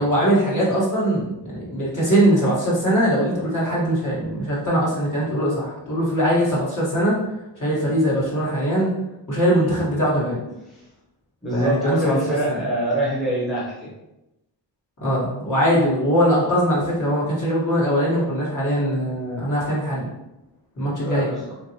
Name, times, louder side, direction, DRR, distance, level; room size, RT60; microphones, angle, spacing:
voice 1, 0.0-7.1 7.6-8.9 9.3-10.4 11.5-12.6 15.0-20.1 20.8-21.3, equal, 40° left, -6 dB, 1.3 m, -21 dB
voice 2, 11.4-13.9 21.0-21.5, right 1 dB, ahead, -7 dB, 0.8 m, -24 dB
2.9 x 2.5 x 2.7 m, 0.94 s
cardioid pair, 65°, 46 cm